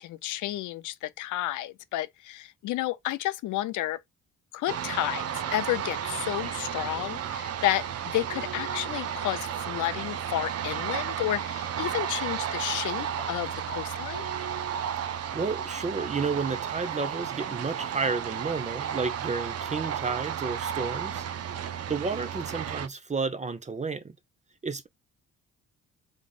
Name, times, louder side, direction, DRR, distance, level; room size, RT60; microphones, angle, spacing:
voice 1, 0.0-4.0 4.5-5.2 5.5-7.9 8.1-14.2, left 15 dB, 80° left, 0.6 m, -31 dB
sound 1, 4.7-22.9, right 9 dB, 55° right, 0.6 m, -33 dB
voice 2, 15.0-21.2 21.6-24.1 24.6-24.9, right 4 dB, 25° right, 0.8 m, -32 dB
4.1 x 3.3 x 2.4 m
cardioid pair, 90°, 30 cm